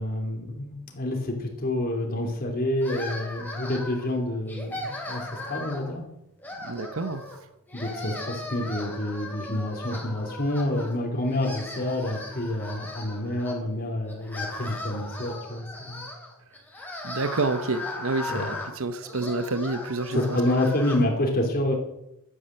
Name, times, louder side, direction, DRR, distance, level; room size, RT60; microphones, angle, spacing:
voice 1, 0.0-6.0 7.7-16.1 18.3-18.5 20.1-21.7, left 1 dB, 45° left, 1 dB, 3.1 m, -28 dB
sound 1, 2.8-4.1 4.5-5.9 6.4-7.4 7.7-11.0 11.3-13.5 14.1-21.0, left 2 dB, 10° left, 3.3 m, -38 dB
voice 2, 6.6-7.2 17.0-20.4, right 3 dB, 65° right, 10 dB, 0.9 m, -29 dB
11.5 x 10.0 x 7.6 m, 0.84 s
head